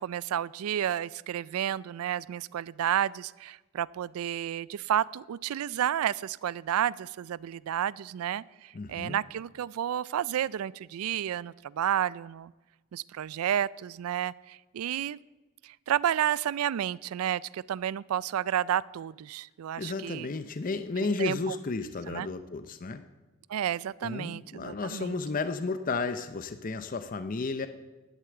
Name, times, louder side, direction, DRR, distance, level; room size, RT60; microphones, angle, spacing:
voice 1, 0.0-12.5 12.9-15.2 15.6-20.3 21.2-21.5 22.1-22.3 23.5-25.2, right 10 dB, 85° right, 22 dB, 0.3 m, -31 dB
voice 2, 8.7-9.2 19.8-23.0 24.0-27.7, left 3 dB, 40° left, 10 dB, 0.5 m, -33 dB
11.0 x 8.3 x 7.8 m, 1.2 s
head